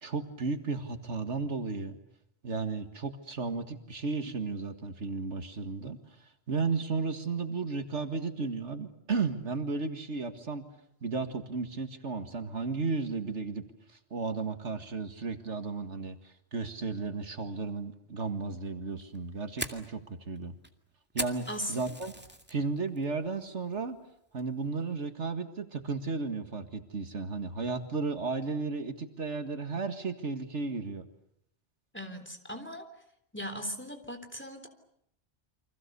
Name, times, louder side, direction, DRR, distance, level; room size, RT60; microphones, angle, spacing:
voice 1, 0.0-2.0 2.4-10.6 11.0-13.6 14.1-20.6 21.1-22.1 22.5-24.0 24.3-31.1, right 4 dB, 80° right, 7 dB, 2.2 m, -34 dB
Fire, 19.0-22.6 23.0-23.3 23.7-23.9 24.4-24.7, right 1 dB, 10° right, 2.2 m, -39 dB
voice 2, 31.9-32.8 33.3-34.7, equal, 10° left, 6 dB, 3.5 m, -38 dB
30.0 x 25.5 x 6.9 m, 0.72 s
omnidirectional pair, 1.2 m